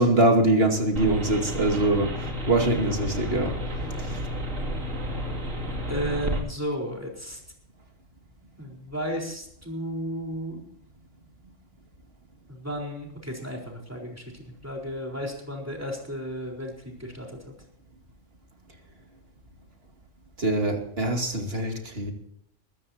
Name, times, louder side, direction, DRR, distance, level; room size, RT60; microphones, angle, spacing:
voice 1, 0.0-2.1 2.5-3.5 4.0-4.2 20.4-22.1, right 1 dB, 50° right, 4 dB, 2.6 m, -23 dB
sound 1, 1.0-6.4, equal, 80° right, 3.1 m, -31 dB
voice 2, 5.9-7.4 8.6-10.6 12.5-17.4, equal, 10° right, -1 dB, 4.0 m, -33 dB
22.0 x 14.0 x 2.8 m, 0.71 s
omnidirectional pair, 1.3 m